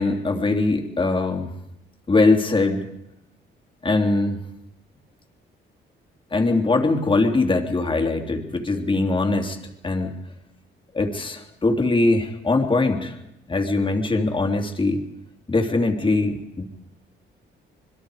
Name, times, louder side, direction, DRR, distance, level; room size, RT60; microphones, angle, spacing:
voice 1, 0.0-1.5 2.1-2.8 3.8-4.4 6.3-9.6 9.8-10.2 10.9-13.2 13.5-15.0 15.5-16.6, left 3 dB, 25° left, 3 dB, 3.2 m, -21 dB
26.5 x 21.5 x 4.9 m, 0.82 s
cardioid pair, 90°, 20 cm